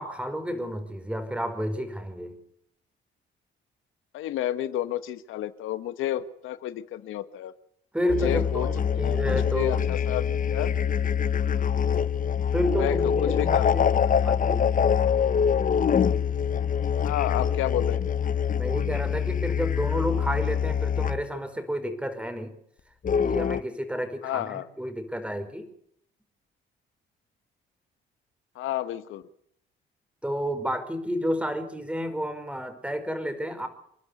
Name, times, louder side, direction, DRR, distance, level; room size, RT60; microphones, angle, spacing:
voice 1, 0.0-2.4 7.9-9.7 12.5-13.9 14.2-14.7 18.6-22.5 23.2-25.7 30.2-33.7, equal, 5° right, 8 dB, 5.4 m, -31 dB
voice 2, 4.1-7.5 8.0-10.7 11.5-11.7 12.8-14.4 17.0-18.0 24.2-24.7 28.5-29.2, left 12 dB, 90° left, 13 dB, 1.2 m, -31 dB
sound 1, 8.1-21.3 23.0-23.6, left 7 dB, 45° left, 1.0 m, -24 dB
29.5 x 11.5 x 8.2 m, 0.71 s
cardioid pair, 90°, 20 cm